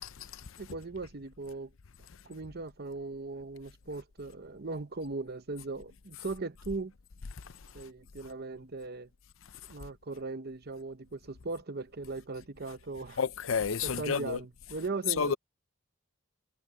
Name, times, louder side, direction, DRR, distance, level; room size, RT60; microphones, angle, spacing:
voice 1, 0.6-1.7 2.2-6.9 7.7-9.1 9.7-13.2 13.8-15.4, right 3 dB, 50° right, 0.9 m, -38 dB
voice 2, 13.2-14.4 15.2-15.4, left 5 dB, 70° left, 0.6 m, -30 dB
head